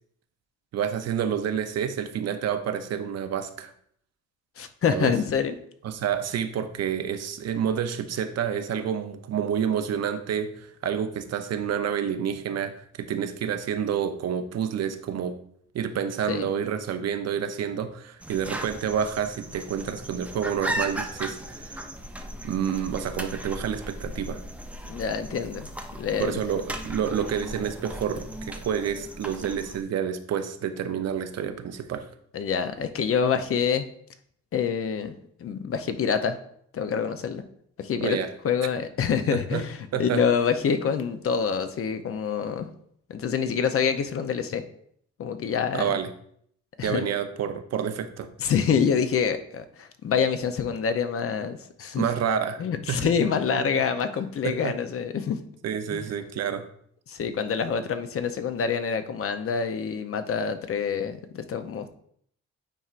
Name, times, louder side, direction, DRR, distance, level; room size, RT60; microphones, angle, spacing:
voice 1, 0.7-3.7 4.9-5.1 5.8-15.4 15.7-21.8 22.4-24.4 26.2-32.0 38.0-38.3 39.3-39.6 39.9-40.2 45.7-46.1 46.8-48.3 52.0-52.6 52.9-53.1 53.5-53.8 54.4-54.7 55.6-56.6, right 8 dB, 55° right, 9 dB, 0.6 m, -29 dB
voice 2, 4.6-5.6 16.3-16.5 24.9-25.7 26.0-26.4 32.3-33.9 34.5-35.1 35.4-36.4 36.7-37.4 37.8-38.2 38.4-42.7 43.1-44.6 45.2-46.0 46.8-47.1 48.4-52.1 52.6-55.4 55.9-56.0 57.1-61.9, left 6 dB, 50° left, 9 dB, 0.6 m, -26 dB
sound 1, 18.2-29.8, right 1 dB, 5° right, 0.6 m, -37 dB
8.9 x 4.4 x 2.5 m, 0.66 s
cardioid pair, 90°, 30 cm